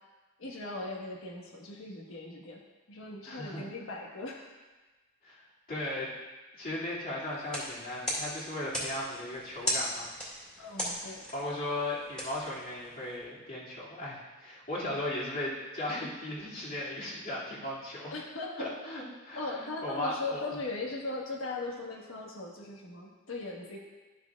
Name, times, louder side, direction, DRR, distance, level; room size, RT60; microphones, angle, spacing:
voice 1, 0.4-2.6 2.9-4.5 10.6-11.3 18.1-18.7 19.3-23.8, left 2 dB, 75° left, -1 dB, 1.4 m, -39 dB
voice 2, 3.2-3.7 5.2-5.4 5.7-6.1 6.6-10.1 11.3-18.1 18.6-20.5, left 1 dB, 45° left, -8 dB, 2.3 m, -37 dB
sound 1, 7.4-13.2, equal, 5° left, 2.1 m, -38 dB
12.0 x 6.7 x 2.4 m, 1.2 s
head